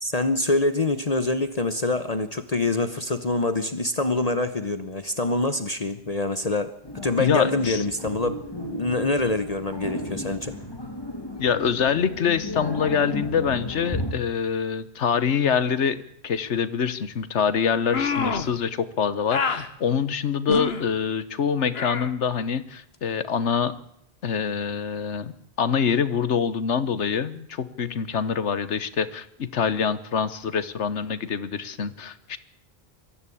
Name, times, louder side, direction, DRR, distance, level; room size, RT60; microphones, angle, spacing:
voice 1, 0.0-6.7 7.0-10.6, left 2 dB, 35° left, 10 dB, 1.1 m, -25 dB
sound 1, 6.8-14.1, left 1 dB, 20° left, 2.7 m, -34 dB
voice 2, 7.2-7.8 11.4-23.7 24.2-25.3 25.6-32.4, left 7 dB, 90° left, 14 dB, 1.4 m, -25 dB
sound 2, 17.9-18.5 19.3-19.7 20.5-20.8 21.7-22.1, left 4 dB, 65° left, 1.5 m, -26 dB
22.5 x 14.5 x 8.6 m, 0.74 s
omnidirectional pair, 1.1 m